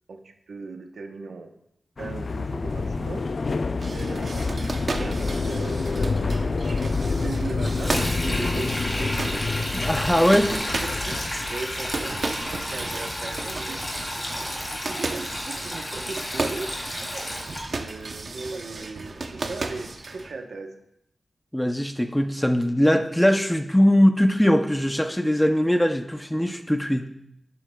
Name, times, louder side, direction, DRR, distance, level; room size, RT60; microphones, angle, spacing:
voice 1, 0.1-1.5 2.0-3.3 3.9-6.6 7.1-10.0 10.4-13.9 14.5-16.7 17.7-20.7, right 3 dB, 90° right, 4 dB, 0.9 m, -38 dB
sound 1, 2.0-14.8, left 3 dB, 55° left, 0.3 m, -28 dB
sound 2, 3.8-20.3, right 3 dB, 60° right, 0.7 m, -35 dB
Sink (filling or washing), 7.6-17.6, left 1 dB, 20° left, 2.0 m, -32 dB
voice 2, 9.8-10.5 21.5-27.1, equal, 5° left, 7 dB, 0.6 m, -21 dB
11.0 x 7.4 x 2.3 m, 0.77 s
wide cardioid pair, 95°, 0 cm